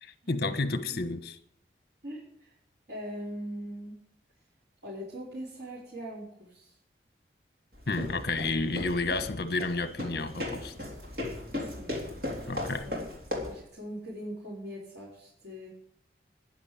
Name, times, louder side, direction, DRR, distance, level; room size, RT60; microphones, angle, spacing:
voice 1, 0.0-1.3 7.9-10.7 12.5-12.9, left 3 dB, 60° left, 1.3 m, -31 dB
voice 2, 2.0-2.5 2.9-4.0 4.8-6.7 11.6-12.1 12.4-13.0 13.4-15.7, equal, 80° right, 5.0 m, -41 dB
sound 1, 7.7-13.6, left 2 dB, 55° right, 3.7 m, -37 dB
11.0 x 10.5 x 8.8 m
head